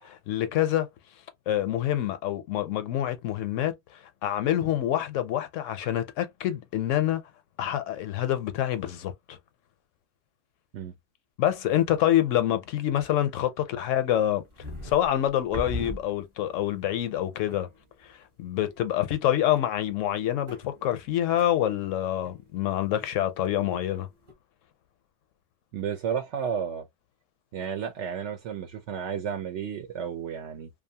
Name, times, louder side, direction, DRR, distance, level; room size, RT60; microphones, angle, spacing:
voice 1, 0.0-0.9 1.5-3.7 4.2-7.2 7.6-9.4 11.4-14.4 14.8-17.7 18.4-24.1, left 12 dB, 80° left, 0.9 m, -26 dB
sound 1, 14.1-16.6 17.0-17.1 17.5-18.0 18.6-19.3 19.6-23.4 23.7-24.3, left 1 dB, 30° right, 0.7 m, -41 dB
voice 2, 25.7-26.9 27.5-30.7, right 7 dB, 70° right, 0.8 m, -32 dB
2.6 x 2.3 x 2.6 m
omnidirectional pair, 1.3 m